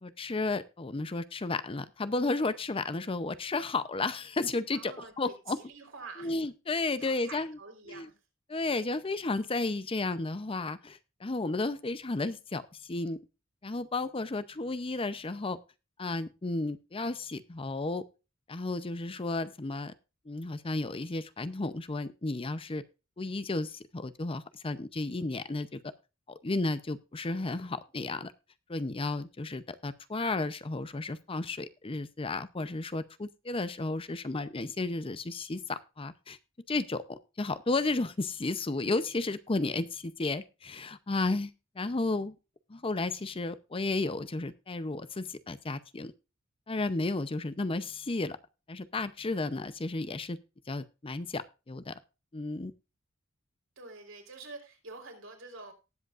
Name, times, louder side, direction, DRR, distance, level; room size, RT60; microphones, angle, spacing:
voice 1, 0.0-5.6 6.2-7.6 7.9-8.1 8.5-12.6 12.9-13.2 13.6-15.6 16.0-18.0 18.5-19.9 20.3-22.8 23.2-25.8 26.3-28.3 28.7-36.4 36.7-41.5 41.8-42.3 42.7-46.1 46.7-48.4 48.7-50.4 50.7-51.9 52.3-52.7, left 2 dB, 25° left, 14 dB, 0.6 m, -33 dB
voice 2, 4.7-6.3 7.0-8.2 53.8-55.7, right 4 dB, 75° right, 3 dB, 3.8 m, -47 dB
19.0 x 7.9 x 2.4 m, 0.29 s
head